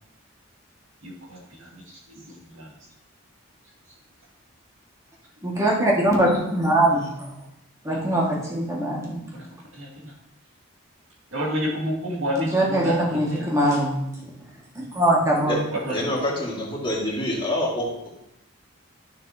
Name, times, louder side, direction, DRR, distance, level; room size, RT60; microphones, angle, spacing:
voice 1, 1.0-1.4 2.6-2.7 7.9-8.0 9.3-9.4 9.8-10.1 11.3-13.0 13.3-13.5 15.9-16.0, equal, 75° right, -3 dB, 2.3 m, -29 dB
voice 2, 5.4-7.4 7.8-9.2 12.5-14.0 14.9-15.6, right 1 dB, 15° right, -4 dB, 1.8 m, -22 dB
voice 3, 15.9-18.1, left 1 dB, 25° left, -5 dB, 2.1 m, -26 dB
12.5 x 6.1 x 2.8 m, 0.84 s
head